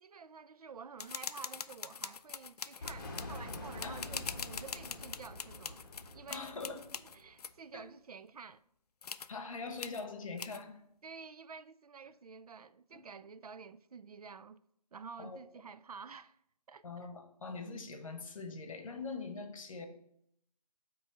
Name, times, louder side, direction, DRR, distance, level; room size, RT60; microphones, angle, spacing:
voice 1, 0.0-5.9 6.1-6.5 7.1-8.6 11.0-14.6 14.9-16.4 16.7-17.1, right 5 dB, 65° right, 0.4 m, -50 dB
sound 1, 1.0-7.5 9.0-9.3 9.8-10.0 10.4-10.6, left 6 dB, 70° left, 0.5 m, -43 dB
sound 2, 2.8-7.5, left 1 dB, 30° left, 1.2 m, -46 dB
voice 2, 3.8-4.3 6.3-6.9 7.7-7.9 9.3-10.8 12.9-13.0 15.2-15.4 16.8-19.9, left 4 dB, 50° left, 1.1 m, -43 dB
8.1 x 3.1 x 6.0 m
figure-of-eight pair, 165°, 21 cm